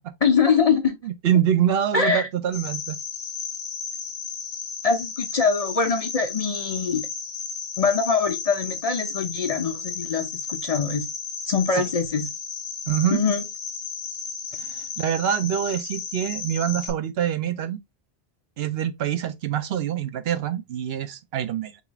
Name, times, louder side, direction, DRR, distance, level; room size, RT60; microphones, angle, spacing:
voice 1, 0.2-1.0 1.9-2.3 4.8-7.1 7.8-11.1 11.5-12.3 13.1-13.4, left 5 dB, 40° left, 0.6 m, -23 dB
voice 2, 1.0-3.0 11.7-11.8 12.9-13.2 14.6-17.8 18.6-21.8, right 10 dB, 70° right, 0.8 m, -25 dB
Cricket, 2.5-16.9, left 5 dB, 65° left, 1.4 m, -34 dB
6.7 x 2.4 x 2.9 m
omnidirectional pair, 1.1 m